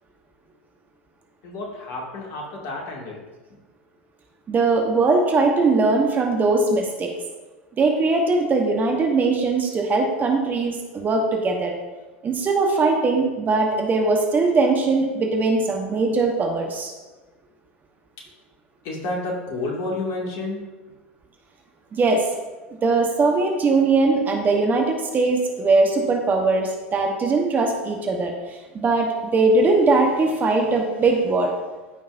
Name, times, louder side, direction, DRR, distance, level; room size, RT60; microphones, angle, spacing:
voice 1, 1.4-3.2 18.8-20.6, left 2 dB, 50° left, -2 dB, 2.4 m, -30 dB
voice 2, 4.5-7.1 7.8-11.7 12.2-16.9 21.9-22.3 22.8-31.5, right 3 dB, 25° right, 2 dB, 1.2 m, -20 dB
13.5 x 5.4 x 2.7 m, 1.2 s
figure-of-eight pair, 85°, 7 cm